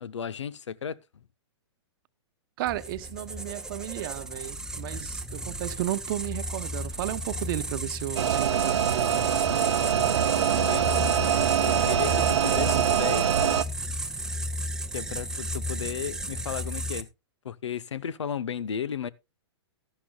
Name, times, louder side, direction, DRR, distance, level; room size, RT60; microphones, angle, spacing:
voice 1, 0.0-1.0 9.9-10.9 11.6-13.5 14.9-17.1 17.4-19.1, left 8 dB, 90° left, 0.7 m, -34 dB
voice 2, 2.6-9.4, right 14 dB, 50° right, 0.9 m, -34 dB
sound 1, 2.7-17.0, equal, 5° right, 0.6 m, -34 dB
sound 2, 8.2-13.6, right 9 dB, 80° right, 0.7 m, -24 dB
13.5 x 11.5 x 2.2 m
hypercardioid pair, 130°, 15 cm